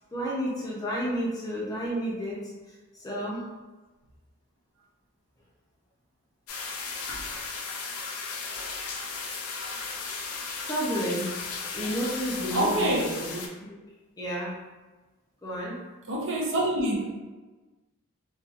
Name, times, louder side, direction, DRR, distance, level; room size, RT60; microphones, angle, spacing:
voice 1, 0.1-2.4 3.0-3.4 7.1-7.2 10.6-11.3 11.7-13.4 13.7-13.8 14.2-14.6 15.4-15.8, equal, 15° left, -5 dB, 0.5 m, -31 dB
sound 1, 6.5-13.5, left 4 dB, 75° left, 0.4 m, -35 dB
voice 2, 12.5-13.1 16.1-17.1, right 1 dB, 55° right, -2 dB, 0.6 m, -26 dB
2.8 x 2.3 x 2.4 m, 1.2 s
head